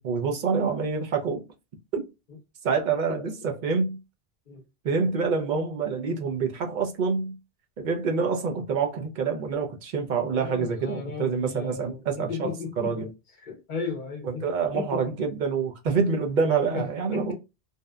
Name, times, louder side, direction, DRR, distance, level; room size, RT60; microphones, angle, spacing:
voice 1, 0.0-1.4 1.9-2.1 2.6-4.0 4.8-7.3 7.8-13.1 14.3-17.3, right 5 dB, 55° right, 0.6 m, -27 dB
voice 2, 10.3-13.1 13.4-14.4 14.7-15.1 16.7-16.8 17.1-17.3, left 5 dB, 50° left, 0.8 m, -34 dB
2.7 x 2.1 x 2.3 m
omnidirectional pair, 1.1 m